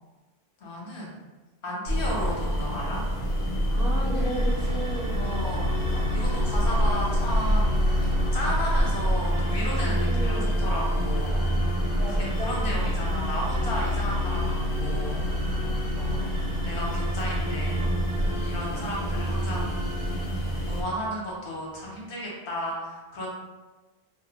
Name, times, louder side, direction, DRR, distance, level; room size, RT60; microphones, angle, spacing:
voice 1, 0.6-1.1 1.6-3.0 5.1-11.5 12.0-15.2 15.9-16.3 16.6-17.8 18.4-19.8 20.7-23.3, equal, 60° left, -4 dB, 0.8 m, -34 dB
sound 1, 1.9-20.8, equal, 40° left, 0.5 m, -27 dB
voice 2, 3.7-5.2 10.0-10.5 12.0-13.0, right 1 dB, 65° right, -6 dB, 0.9 m, -35 dB
sound 2, 4.1-21.3, left 1 dB, 40° right, 0.4 m, -32 dB
2.4 x 2.0 x 2.8 m, 1.2 s
omnidirectional pair, 1.1 m